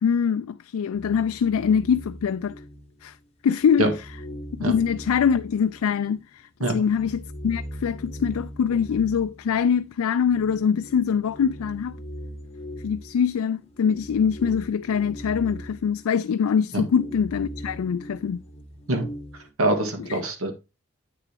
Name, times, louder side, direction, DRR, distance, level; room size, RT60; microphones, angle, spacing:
voice 1, 0.0-2.5 3.0-3.2 3.4-3.9 4.7-12.0 12.8-18.4, left 7 dB, 90° left, 0.4 m, -23 dB
sound 1, 0.9-3.2 3.5-6.3 6.6-19.5, equal, 30° left, 1.1 m, -40 dB
voice 2, 19.6-20.5, right 1 dB, 90° right, 1.9 m, -24 dB
8.4 x 6.8 x 2.9 m
head